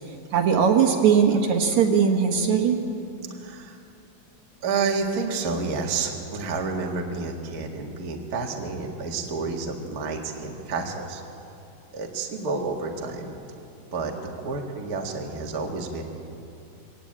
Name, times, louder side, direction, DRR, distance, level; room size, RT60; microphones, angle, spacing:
voice 1, 0.3-2.8, right 7 dB, 65° right, 4 dB, 2.5 m, -19 dB
voice 2, 3.4-3.8 4.6-11.2 11.9-13.3 13.9-16.0, right 4 dB, 35° right, 1 dB, 1.8 m, -30 dB
22.5 x 17.0 x 8.7 m, 2.7 s
omnidirectional pair, 3.8 m